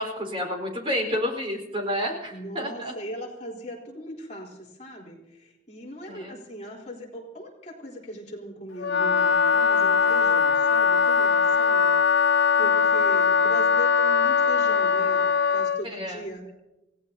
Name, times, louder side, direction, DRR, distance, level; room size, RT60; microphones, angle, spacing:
voice 1, 0.0-2.9 6.0-6.4 15.9-16.2, equal, 30° right, 2 dB, 4.6 m, -30 dB
voice 2, 2.3-15.2 15.5-16.4, equal, 35° left, -3 dB, 3.7 m, -39 dB
Wind instrument woodwind instrument, 8.8-15.8, left 6 dB, 65° left, 0.5 m, -21 dB
29.0 x 17.5 x 2.8 m, 0.96 s
head